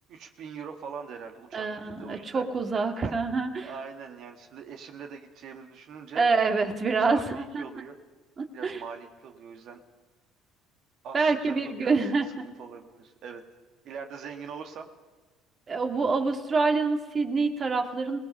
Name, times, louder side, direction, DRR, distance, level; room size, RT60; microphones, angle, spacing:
voice 1, 0.1-2.4 3.0-3.1 3.6-6.3 7.0-8.0 8.5-9.8 11.0-12.0 12.4-13.4 13.8-14.9, right 6 dB, 60° right, 5 dB, 1.9 m, -42 dB
voice 2, 1.5-3.7 6.2-7.6 8.4-8.8 11.1-12.5 15.7-18.2, right 4 dB, 35° right, 5 dB, 2.1 m, -26 dB
26.5 x 18.5 x 5.6 m, 1.3 s
supercardioid pair, 80°, 0 cm